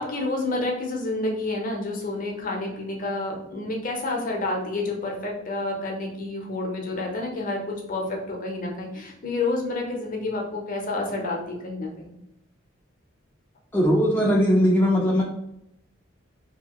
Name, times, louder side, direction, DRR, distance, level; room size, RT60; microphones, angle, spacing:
voice 1, 0.0-12.1, left 2 dB, 45° left, 0 dB, 0.7 m, -29 dB
voice 2, 13.7-15.2, equal, 10° left, -4 dB, 0.4 m, -19 dB
2.8 x 2.6 x 2.9 m, 0.79 s
head